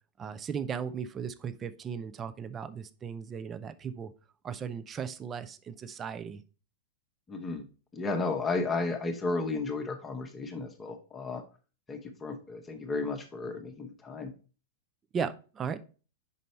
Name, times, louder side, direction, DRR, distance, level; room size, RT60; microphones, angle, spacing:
voice 1, 0.2-4.1 4.4-6.4 15.1-15.8, right 7 dB, 20° right, 13 dB, 0.6 m, -36 dB
voice 2, 7.3-7.7 7.9-11.4 11.9-14.3, left 3 dB, 15° left, 3 dB, 1.0 m, -33 dB
5.5 x 5.3 x 4.3 m, 0.36 s
figure-of-eight pair, 100°, 0 cm